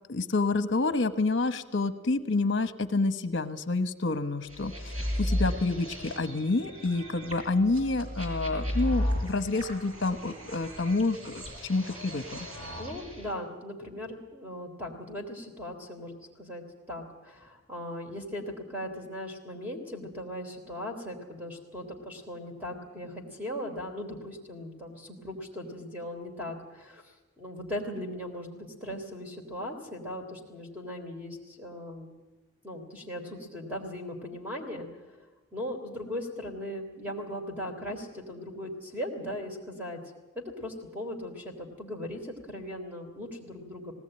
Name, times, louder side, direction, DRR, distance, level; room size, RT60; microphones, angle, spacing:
voice 1, 0.1-12.5, left 3 dB, 55° left, 11 dB, 1.1 m, -28 dB
sound 1, 4.5-13.3, equal, 85° right, 6.1 m, -34 dB
voice 2, 12.8-27.0 27.4-32.1 32.6-34.9 35.5-40.0 40.3-43.9, left 1 dB, 10° right, 1 dB, 3.3 m, -38 dB
19.5 x 18.0 x 9.0 m, 1.2 s
head